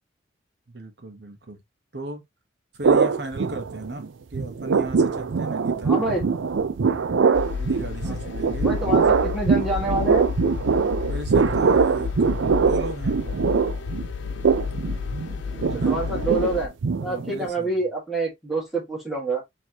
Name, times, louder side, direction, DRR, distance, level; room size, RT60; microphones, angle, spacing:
voice 1, 0.7-1.6 1.9-2.2 2.7-6.0 7.6-8.7 10.7-10.8 11.1-13.2 15.7-16.1 17.0-17.8, right 2 dB, 60° right, 1.0 m, -36 dB
sound 1, 2.8-4.1 4.3-17.5, right 5 dB, 80° right, 0.5 m, -22 dB
voice 2, 5.8-6.2 8.0-8.1 8.6-10.4 15.8-16.7 17.0-19.4, right 2 dB, ahead, 1.8 m, -27 dB
sound 2, 7.3-16.7, left 6 dB, 75° left, 0.4 m, -31 dB
4.5 x 3.1 x 2.8 m
head